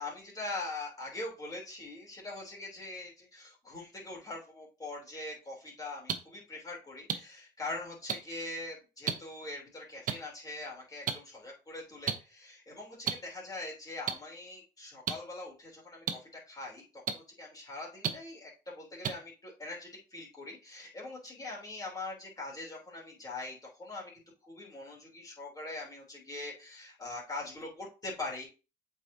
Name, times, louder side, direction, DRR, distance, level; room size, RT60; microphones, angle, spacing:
voice 1, 0.0-24.1 24.4-28.5, left 2 dB, 20° left, -3 dB, 3.2 m, -42 dB
sound 1, 6.1-6.2 7.1-7.2 8.1-8.2 9.1-9.2 10.1-10.2 11.1-11.2 12.1-12.2 13.0-13.1 14.1-14.2 15.1-15.2 16.1-16.2 17.1-17.2 18.0-18.1 19.0-19.1, right 7 dB, 50° right, 0.9 m, -30 dB
7.9 x 4.8 x 2.8 m, 0.32 s
cardioid pair, 110°, 17 cm